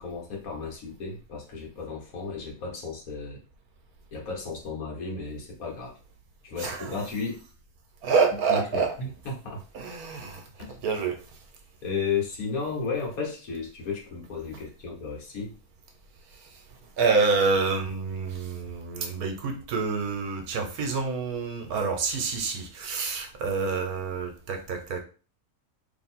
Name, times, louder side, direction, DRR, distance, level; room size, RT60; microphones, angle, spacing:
voice 1, 0.0-3.4 4.1-5.9 6.4-7.4 8.5-9.6 11.8-15.5, left 4 dB, 70° left, 1.6 m, -33 dB
voice 2, 6.6-7.0 8.0-8.9 9.7-11.2 16.4-16.6 17.0-25.0, right 4 dB, 75° right, 1.3 m, -27 dB
3.0 x 2.8 x 4.3 m
omnidirectional pair, 1.6 m